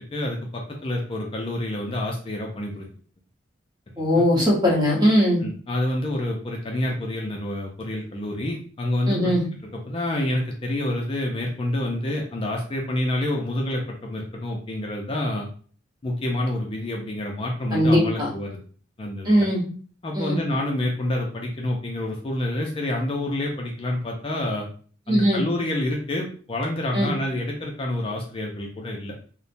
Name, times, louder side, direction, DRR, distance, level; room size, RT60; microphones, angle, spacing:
voice 1, 0.0-2.9 4.0-4.3 5.4-9.4 9.9-15.5 16.0-18.6 19.0-19.5 20.0-24.7 25.1-29.1, left 1 dB, 30° left, 0 dB, 0.4 m, -28 dB
voice 2, 4.0-5.4 9.1-9.4 17.7-18.3 19.2-19.6 20.1-20.4 25.1-25.4 26.9-27.1, equal, 20° right, -3 dB, 0.9 m, -20 dB
3.0 x 2.1 x 2.5 m, 0.44 s
head